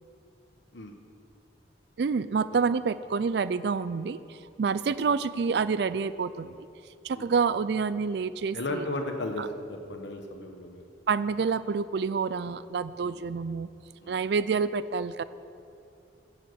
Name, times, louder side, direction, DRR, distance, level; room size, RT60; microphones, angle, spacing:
voice 1, 2.0-4.2 4.6-6.7 7.0-8.8 9.4-9.5 11.1-13.7 14.1-15.2, right 5 dB, 65° right, 15 dB, 0.4 m, -28 dB
voice 2, 8.5-10.8 13.0-13.2 14.0-14.1, left 2 dB, 75° left, 4 dB, 1.2 m, -35 dB
15.0 x 7.3 x 7.9 m, 2.6 s
head